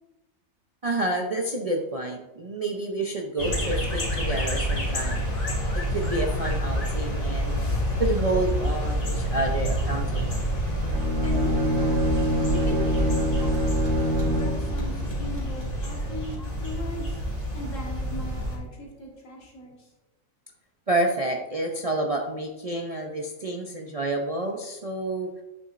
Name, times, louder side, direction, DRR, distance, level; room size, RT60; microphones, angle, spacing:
voice 1, 0.8-5.2 5.7-7.6 8.0-10.5 20.9-25.3, right 2 dB, 40° right, 0 dB, 0.5 m, -29 dB
sound 1, 3.4-18.6, equal, 85° left, 3.1 m, -27 dB
Bowed string instrument, 10.8-14.7, equal, 70° right, 1.4 m, -26 dB
voice 2, 11.2-13.7 14.2-17.2 17.5-19.9, equal, 70° left, -2 dB, 2.2 m, -39 dB
8.8 x 6.9 x 2.5 m, 1.0 s
omnidirectional pair, 1.4 m